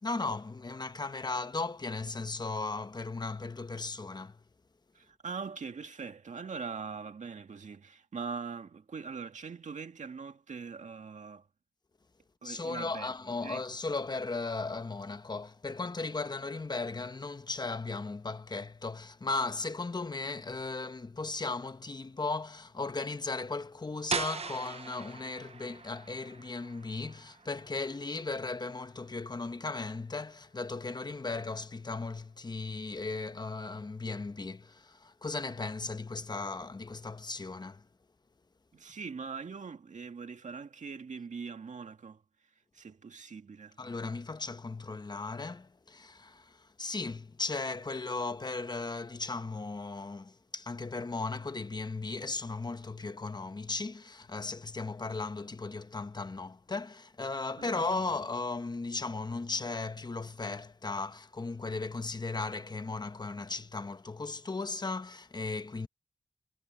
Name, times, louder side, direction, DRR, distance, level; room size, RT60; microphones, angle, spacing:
voice 1, 0.0-4.4 12.4-37.9 43.8-65.9, left 3 dB, 35° left, 0.9 m, -36 dB
voice 2, 4.9-11.5 12.4-13.1 13.4-13.6 38.7-42.2 42.7-43.8 57.6-57.8, right 5 dB, 85° right, 1.9 m, -42 dB
sound 1, 24.1-29.7, right 5 dB, 60° right, 0.7 m, -41 dB
wide cardioid pair, 110°, 12 cm